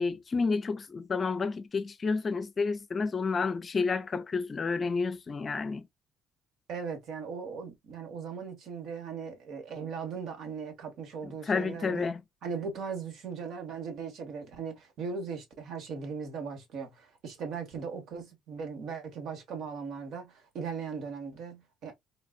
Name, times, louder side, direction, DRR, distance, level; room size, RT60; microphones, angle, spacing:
voice 1, 0.0-5.8 11.2-12.2, left 4 dB, 40° left, 0.5 m, -30 dB
voice 2, 6.7-12.1 12.4-21.9, right 5 dB, 70° right, 1.3 m, -38 dB
3.8 x 2.5 x 2.4 m
cardioid pair, 90°, 0 cm